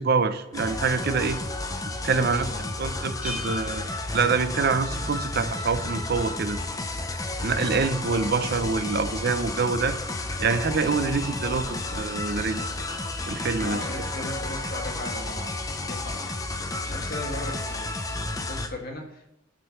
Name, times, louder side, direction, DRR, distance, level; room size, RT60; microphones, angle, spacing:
voice 1, 0.0-1.4 1.9-2.5 2.8-3.8 4.1-6.6 7.4-10.0 10.4-12.7 13.3-13.8, right 4 dB, 55° right, 10 dB, 0.6 m, -26 dB
sound 1, 0.5-18.7, left 2 dB, 20° left, 0.6 m, -32 dB
voice 2, 2.0-3.5 13.6-19.4, left 1 dB, 50° left, 1 dB, 1.5 m, -39 dB
Bell, 3.2-5.0, left 1 dB, 5° right, 1.2 m, -40 dB
9.3 x 3.9 x 5.6 m, 0.87 s
head